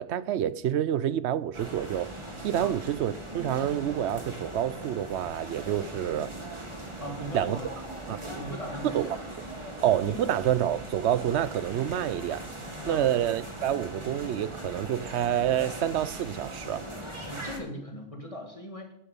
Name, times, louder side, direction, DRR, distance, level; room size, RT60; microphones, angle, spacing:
voice 1, 0.0-2.2 2.4-6.3 7.3-7.6 8.1-8.2 8.8-9.1 9.8-12.5 12.9-16.9, right 11 dB, 75° right, 0.8 m, -28 dB
sound 1, 1.5-17.6, right 1 dB, 25° right, 2.0 m, -40 dB
voice 2, 7.0-7.7 8.2-9.1 10.1-10.2 12.8-13.1 17.3-18.9, equal, 30° left, 2.0 m, -39 dB
11.5 x 10.5 x 5.3 m
omnidirectional pair, 1.2 m